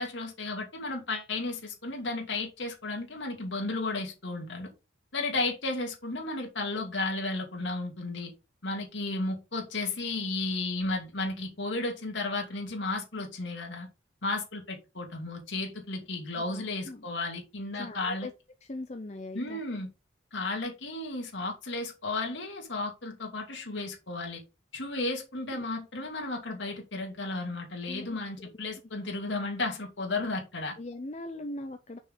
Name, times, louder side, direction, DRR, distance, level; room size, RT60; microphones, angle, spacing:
voice 1, 0.0-4.7 5.1-8.3 8.6-13.9 14.2-18.3 19.3-19.9 20.3-24.4 24.7-30.7, left 2 dB, 75° left, 2.5 m, -33 dB
voice 2, 16.3-17.1 17.8-18.3 18.6-19.6 25.5-25.7 27.9-28.8 30.8-32.0, left 2 dB, 35° left, 0.6 m, -41 dB
6.3 x 5.7 x 3.9 m
head